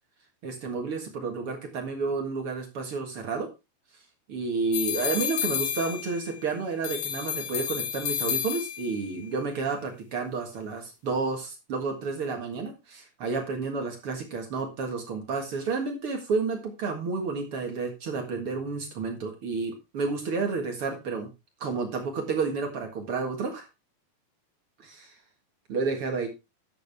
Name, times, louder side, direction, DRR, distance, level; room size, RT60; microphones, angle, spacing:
voice 1, 0.4-3.5 4.3-21.3 21.6-23.7 24.8-25.1 25.7-26.3, right 4 dB, 55° right, 3 dB, 1.6 m, -31 dB
sound 1, 4.7-6.4 6.8-9.0, left 9 dB, 60° left, 3.2 m, -31 dB
11.5 x 8.4 x 3.4 m, 0.25 s
omnidirectional pair, 4.9 m